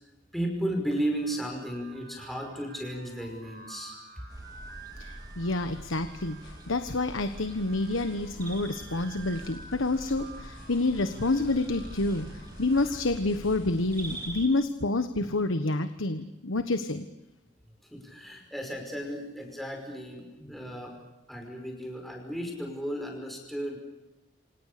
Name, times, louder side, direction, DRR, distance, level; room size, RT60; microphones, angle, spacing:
voice 1, 0.3-3.9 17.9-21.0 21.3-23.8, right 1 dB, ahead, 2 dB, 5.4 m, -34 dB
sound 1, 0.9-13.0, right 5 dB, 60° right, 8.0 m, -51 dB
sound 2, 4.3-14.5, right 1 dB, 20° right, 3.1 m, -44 dB
voice 2, 5.0-6.4 6.7-12.3 12.6-17.0, left 2 dB, 85° left, 9 dB, 1.3 m, -28 dB
sound 3, 5.2-14.3, left 1 dB, 45° left, 7.8 m, -53 dB
28.5 x 26.5 x 6.8 m, 1.0 s
head